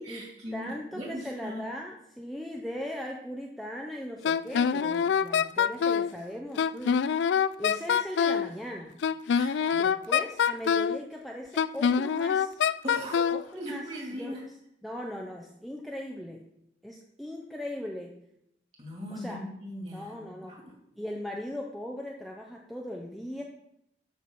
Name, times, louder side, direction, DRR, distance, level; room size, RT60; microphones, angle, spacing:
voice 1, 0.0-1.6 9.3-9.5 12.8-14.4 18.8-20.2 20.5-20.6, equal, 35° right, -2 dB, 3.2 m, -39 dB
voice 2, 0.5-7.0 7.3-8.9 9.7-12.6 13.3-14.6 14.8-16.4 16.8-18.1 19.1-19.4 19.9-20.6 20.9-23.4, left 1 dB, ahead, 0 dB, 0.6 m, -39 dB
Wind instrument woodwind instrument, 4.2-6.1 6.6-8.5 9.0-11.0 11.6-13.4, left 7 dB, 65° left, 0.3 m, -25 dB
12.5 x 6.1 x 4.2 m, 0.79 s
head